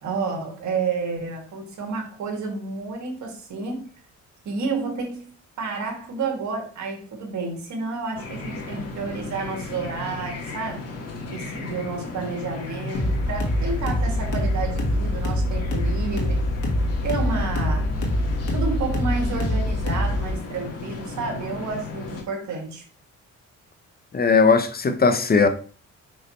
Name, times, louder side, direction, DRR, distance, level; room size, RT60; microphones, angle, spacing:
voice 1, 0.0-3.9 4.4-5.3 5.6-10.8 11.3-16.5 17.0-17.9 18.5-22.8, right 4 dB, 70° right, 2.1 m, -30 dB
sound 1, 8.2-22.2, left 3 dB, 55° left, 1.8 m, -35 dB
sound 2, 12.9-20.3, left 1 dB, 80° left, 1.8 m, -24 dB
voice 2, 24.1-25.5, left 4 dB, 30° left, 0.8 m, -18 dB
5.6 x 5.3 x 3.1 m
cardioid pair, 90°, 30 cm